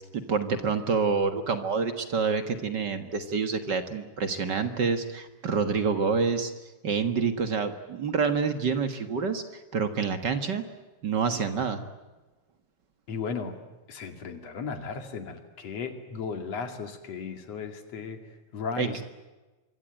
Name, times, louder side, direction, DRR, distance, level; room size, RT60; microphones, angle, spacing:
voice 1, 0.1-6.5 6.8-10.6 11.0-11.8 18.8-18.9, right 5 dB, 50° right, 8 dB, 1.4 m, -27 dB
voice 2, 13.1-13.5 13.9-18.2 18.5-19.0, left 5 dB, 50° left, 6 dB, 3.2 m, -35 dB
25.5 x 23.5 x 9.1 m, 1.2 s
omnidirectional pair, 4.0 m